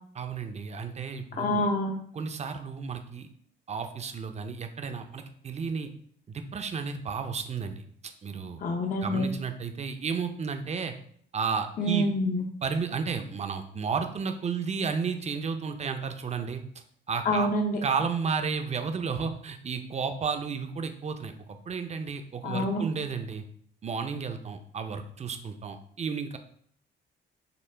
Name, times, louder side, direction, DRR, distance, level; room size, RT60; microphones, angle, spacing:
voice 1, 0.2-1.6 2.1-3.3 3.7-5.9 6.3-7.9 8.2-8.6 9.0-10.9 11.3-12.1 12.6-16.6 17.1-17.5 17.8-23.4 23.8-26.4, right 5 dB, 35° right, 7 dB, 0.6 m, -32 dB
voice 2, 1.4-1.9 8.6-9.3 11.8-12.4 17.2-17.8 22.4-22.8, left 1 dB, 45° left, 2 dB, 0.7 m, -27 dB
6.8 x 2.4 x 3.4 m, 0.62 s
cardioid pair, 90°, 20 cm